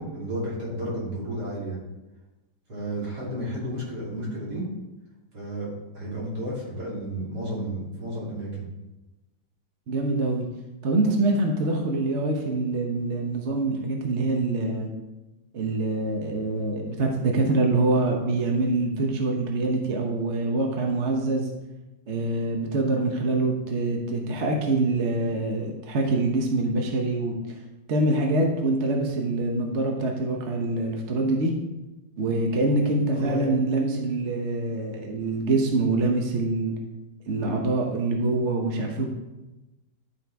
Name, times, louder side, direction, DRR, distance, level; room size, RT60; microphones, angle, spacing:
voice 1, 0.0-1.8 2.7-4.6 5.3-8.6 33.1-33.5, right 1 dB, 65° right, -7 dB, 3.4 m, -32 dB
voice 2, 9.9-10.4 10.8-14.9 15.5-21.5 22.1-27.3 27.9-31.5 32.2-36.7 37.3-39.1, right 2 dB, 50° right, 1 dB, 1.0 m, -25 dB
11.5 x 4.6 x 3.4 m, 1.0 s
omnidirectional pair, 1.9 m